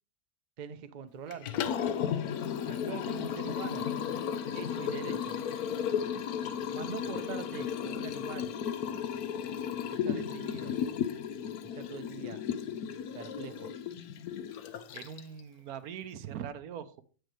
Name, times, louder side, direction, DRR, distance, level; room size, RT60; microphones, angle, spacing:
voice 1, 0.6-1.7 2.7-3.9 4.5-5.4 6.7-8.5 9.9-10.7 11.7-12.4 13.1-13.7, right 7 dB, 50° right, 0.5 m, -43 dB
Liquid, 1.3-15.4, left 8 dB, 85° left, 1.2 m, -34 dB
voice 2, 14.9-17.0, right 9 dB, 80° right, 1.2 m, -41 dB
8.8 x 6.4 x 3.2 m
omnidirectional pair, 1.6 m